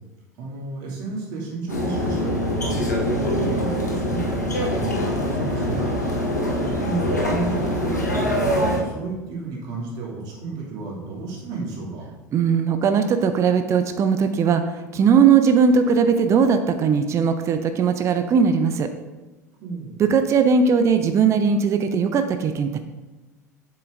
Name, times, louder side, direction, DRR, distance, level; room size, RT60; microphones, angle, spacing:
voice 1, 0.4-5.9 6.8-12.1 19.6-20.0, right 3 dB, 50° right, -3 dB, 2.4 m, -32 dB
sound 1, 1.7-8.8, equal, 85° left, 1.1 m, -24 dB
voice 2, 12.3-18.9 20.0-22.8, right 6 dB, 35° right, 8 dB, 0.6 m, -19 dB
8.1 x 6.8 x 2.6 m, 1.1 s
figure-of-eight pair, 70°, 9 cm